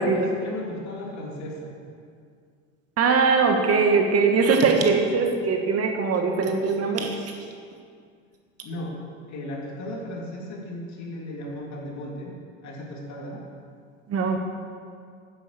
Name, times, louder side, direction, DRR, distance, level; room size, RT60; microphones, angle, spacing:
voice 1, 0.0-1.7 8.6-9.0 9.3-12.3 12.6-13.4, left 1 dB, 45° left, -1 dB, 3.1 m, -35 dB
voice 2, 3.0-7.2 14.1-14.4, right 4 dB, 40° right, 3 dB, 1.5 m, -21 dB
9.9 x 9.1 x 6.7 m, 2.2 s
hypercardioid pair, 85°, 39 cm